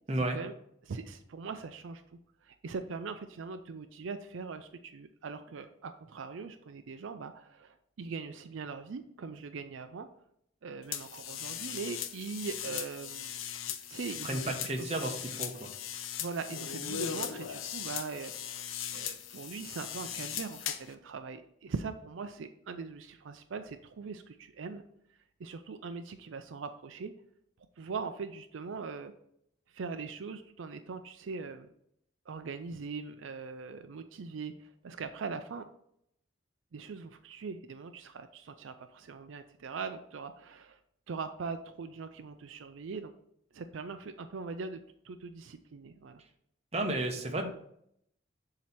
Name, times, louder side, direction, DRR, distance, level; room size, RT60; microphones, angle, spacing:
voice 1, 0.2-0.5 0.8-2.0 2.4-10.1 10.6-13.3 13.9-15.0 16.2-24.8 25.4-27.1 27.8-29.1 29.7-31.7 32.3-35.7 36.7-40.8 41.1-43.1 43.5-46.2, right 4 dB, 80° right, 9 dB, 0.4 m, -41 dB
sound 1, 10.9-20.9, left 9 dB, 90° left, 0.5 m, -39 dB
voice 2, 14.2-15.7 46.7-47.5, right 2 dB, 30° right, 3 dB, 0.8 m, -32 dB
7.4 x 2.9 x 5.7 m, 0.73 s
head